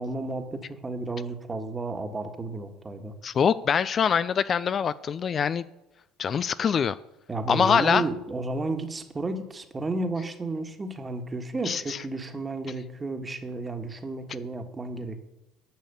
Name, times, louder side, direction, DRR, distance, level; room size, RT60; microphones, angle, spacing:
voice 1, 0.0-3.1 7.3-15.2, right 2 dB, 20° right, 1.5 m, -32 dB
voice 2, 3.2-5.6 6.2-7.0 7.5-8.0 11.7-12.0, left 7 dB, 40° left, 0.4 m, -24 dB
10.5 x 6.3 x 6.8 m
hypercardioid pair, 80°, 0 cm